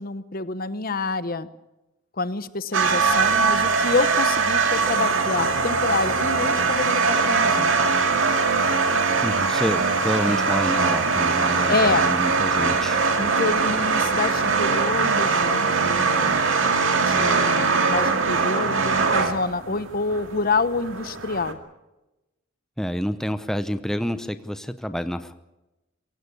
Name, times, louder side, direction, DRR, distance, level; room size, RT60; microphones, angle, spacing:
voice 1, 0.0-1.5 2.2-7.7 11.7-12.1 13.2-16.4 17.0-21.6, left 3 dB, 45° left, 14 dB, 0.9 m, -27 dB
sound 1, 2.7-21.5, right 4 dB, 75° right, 2.4 m, -22 dB
voice 2, 9.2-13.0 22.8-25.3, equal, ahead, 10 dB, 0.7 m, -28 dB
23.5 x 16.5 x 8.5 m, 1.0 s
head